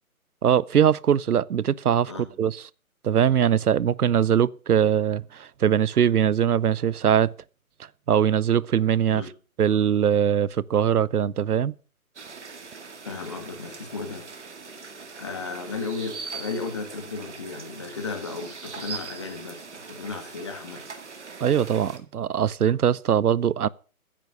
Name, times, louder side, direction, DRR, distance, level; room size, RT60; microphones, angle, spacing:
voice 1, 0.4-2.1 2.4-2.6 3.0-7.3 8.1-9.2 9.6-11.7 21.4-23.7, right 9 dB, 85° right, 0.7 m, -21 dB
sound 1, 12.2-22.0, right 5 dB, 50° right, 2.3 m, -41 dB
voice 2, 13.0-14.3 15.2-20.9, left 4 dB, 20° left, 1.7 m, -34 dB
15.0 x 8.7 x 6.6 m
hypercardioid pair, 175°, 44 cm